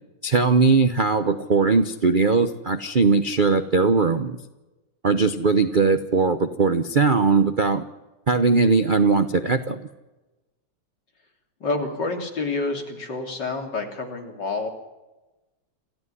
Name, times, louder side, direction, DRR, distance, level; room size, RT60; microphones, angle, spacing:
voice 1, 0.2-4.4 5.0-7.8 8.3-9.9, right 4 dB, 40° right, 9 dB, 0.7 m, -20 dB
voice 2, 11.6-14.7, left 3 dB, 60° left, 3 dB, 3.8 m, -28 dB
27.0 x 15.0 x 9.8 m, 1.1 s
omnidirectional pair, 2.2 m